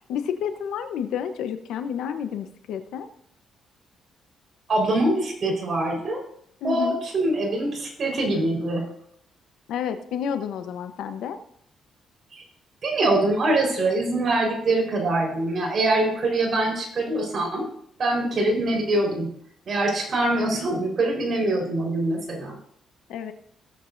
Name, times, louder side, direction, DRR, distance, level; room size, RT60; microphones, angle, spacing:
voice 1, 0.1-3.1 6.6-7.0 9.7-11.4 23.1-23.3, left 8 dB, 80° left, 9 dB, 0.9 m, -30 dB
voice 2, 4.7-6.2 6.6-8.8 12.3-12.4 12.8-17.7 18.0-19.3 19.7-22.5, right 2 dB, 50° right, 0 dB, 4.3 m, -24 dB
18.0 x 7.9 x 2.6 m, 0.66 s
cardioid pair, 90°, 0 cm